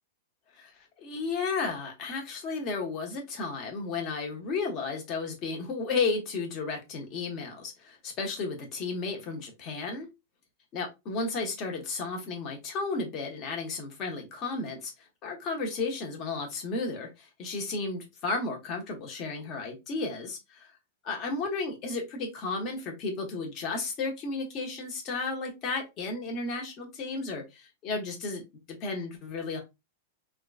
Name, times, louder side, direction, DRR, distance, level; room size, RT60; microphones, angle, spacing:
voice 1, 0.5-10.1 10.7-20.7 21.1-28.4 28.7-29.6, left 3 dB, 30° left, 0.9 m, -33 dB
3.6 x 2.3 x 2.4 m
supercardioid pair, 165°, 0 cm